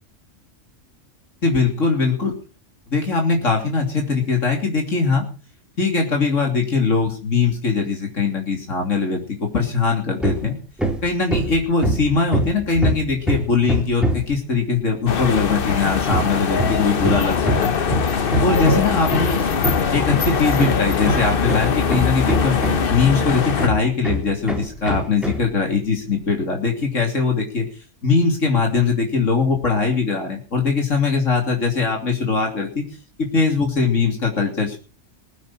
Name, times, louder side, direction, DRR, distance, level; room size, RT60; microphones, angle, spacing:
voice 1, 1.4-2.3 2.9-5.2 5.8-10.6 11.0-17.7 18.4-19.4 19.9-22.6 22.9-27.7 28.0-32.8 33.2-34.8, left 4 dB, 85° left, 2 dB, 3.5 m, -21 dB
Hammer, 10.2-10.5 10.8-14.4 16.1-23.0 23.6-25.5, equal, ahead, 3.4 m, -24 dB
sound 1, 15.1-23.7, left 6 dB, 50° left, 1.1 m, -22 dB
21.0 x 9.3 x 5.7 m, 0.36 s
omnidirectional pair, 1.3 m